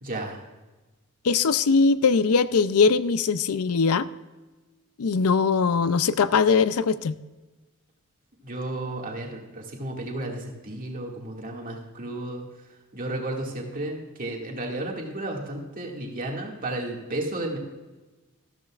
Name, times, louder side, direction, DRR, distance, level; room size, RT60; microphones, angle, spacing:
voice 1, 0.0-0.4 8.4-12.4 12.9-17.6, right 1 dB, 40° right, -1 dB, 2.1 m, -33 dB
voice 2, 1.2-4.1 5.0-7.2, left 5 dB, 75° left, 14 dB, 0.5 m, -21 dB
13.5 x 13.0 x 2.4 m, 1.2 s
head